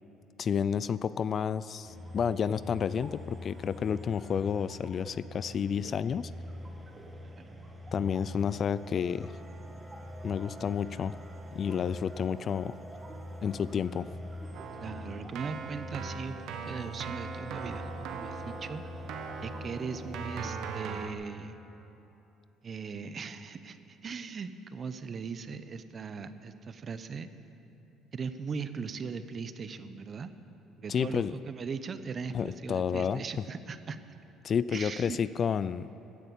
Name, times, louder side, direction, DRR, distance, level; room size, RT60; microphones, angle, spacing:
voice 1, 0.4-6.3 7.9-9.3 10.2-11.1 11.5-12.7 13.4-14.1 30.9-31.3 32.3-33.2 34.4-35.9, left 7 dB, 40° left, 16 dB, 0.3 m, -30 dB
sound 1, 1.8-20.8, left 1 dB, 20° right, 1.6 m, -44 dB
voice 2, 7.2-7.6 14.8-18.8 19.4-21.6 22.6-27.3 28.1-30.3 30.8-34.0 34.7-35.2, right 5 dB, 35° right, 11 dB, 0.8 m, -39 dB
Keyboard (musical), 14.5-21.1, right 6 dB, 65° right, 1.1 m, -40 dB
16.0 x 9.9 x 8.4 m, 2.9 s
cardioid pair, 125°, 0 cm